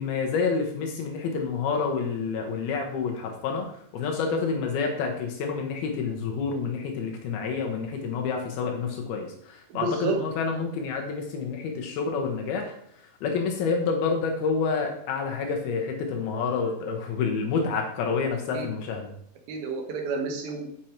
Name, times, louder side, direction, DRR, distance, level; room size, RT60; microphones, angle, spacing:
voice 1, 0.0-3.7 3.9-12.7 13.2-19.1, left 5 dB, 80° left, 2 dB, 2.9 m, -28 dB
voice 2, 9.7-10.2 18.5-18.7 19.5-20.7, right 3 dB, 75° right, 3 dB, 2.9 m, -30 dB
7.0 x 6.4 x 4.4 m, 0.68 s
omnidirectional pair, 4.4 m